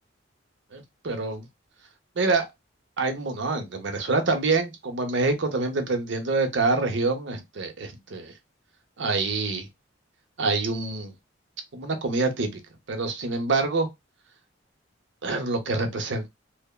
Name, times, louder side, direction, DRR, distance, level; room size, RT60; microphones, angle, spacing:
voice 1, 0.7-1.5 2.2-2.4 3.0-8.3 9.0-9.7 10.4-11.1 11.7-12.5 12.9-13.9 15.2-16.3, right 3 dB, 65° right, 0.7 m, -26 dB
3.3 x 2.0 x 2.2 m
head